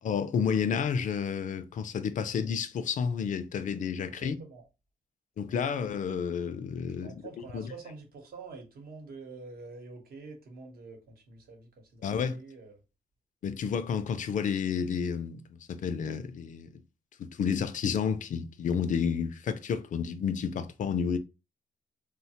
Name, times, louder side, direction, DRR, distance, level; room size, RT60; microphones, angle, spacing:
voice 1, 0.0-4.4 5.4-7.1 7.5-7.7 12.0-12.4 13.4-16.8 17.2-21.2, left 6 dB, 55° left, 0.4 m, -30 dB
voice 2, 4.1-4.6 5.4-5.6 7.0-12.8, right 4 dB, 75° right, 0.9 m, -47 dB
3.1 x 2.1 x 2.8 m
cardioid pair, 120°, 16 cm